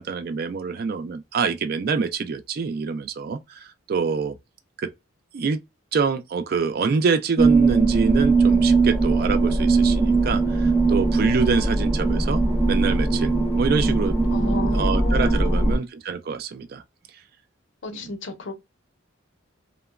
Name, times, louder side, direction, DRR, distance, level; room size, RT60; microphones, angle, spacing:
voice 1, 0.0-4.4 4.8-4.9 5.3-5.6 5.9-12.4 12.7-14.2 14.7-16.8 17.9-18.1, right 5 dB, 50° right, 0.3 m, -25 dB
sound 1, 7.4-15.8, right 3 dB, 10° right, 0.7 m, -20 dB
voice 2, 14.3-15.7 17.8-18.6, left 3 dB, 65° left, 0.6 m, -33 dB
2.9 x 2.1 x 2.3 m
head